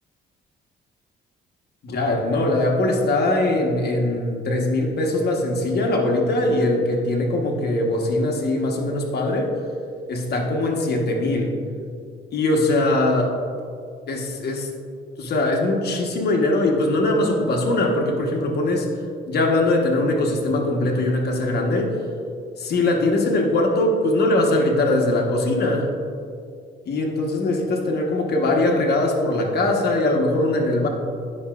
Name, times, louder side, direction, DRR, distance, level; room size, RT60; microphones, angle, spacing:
voice 1, 1.8-9.5 10.1-11.5 12.3-13.3 14.1-14.7 15.2-18.9 19.3-21.9 22.6-25.9 26.9-30.9, left 2 dB, 55° left, 1 dB, 1.1 m, -21 dB
9.7 x 5.8 x 2.4 m, 2.3 s
cardioid pair, 90°, 20 cm